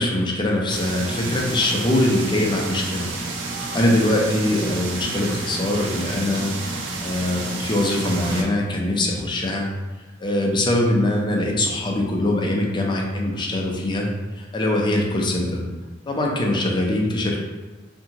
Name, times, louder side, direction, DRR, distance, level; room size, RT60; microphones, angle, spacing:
voice 1, 0.0-3.1 3.7-6.5 7.0-9.7 10.2-14.1 14.4-15.6 16.1-17.5, left 1 dB, 25° left, -1 dB, 0.5 m, -22 dB
sound 1, 0.7-8.4, right 3 dB, 70° right, 0.5 m, -30 dB
2.8 x 2.6 x 2.8 m, 1.2 s
head